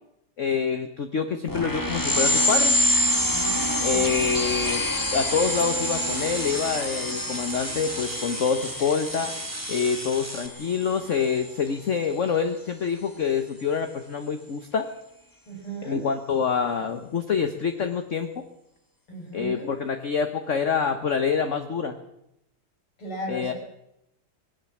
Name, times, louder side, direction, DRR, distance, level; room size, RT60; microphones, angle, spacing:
voice 1, 0.4-2.8 3.8-4.8 5.1-9.3 9.7-14.9 15.8-18.4 19.3-22.0 23.3-23.5, left 6 dB, 40° left, 7 dB, 1.2 m, -26 dB
sound 1, 1.5-11.6, equal, 10° left, 1.4 m, -27 dB
voice 2, 3.3-4.3 15.5-16.1 19.1-19.7 23.0-23.5, right 2 dB, 85° left, 0 dB, 7.0 m, -36 dB
sound 2, 5.3-10.5, right 1 dB, 10° right, 1.1 m, -36 dB
20.0 x 18.0 x 7.3 m, 0.83 s
omnidirectional pair, 2.4 m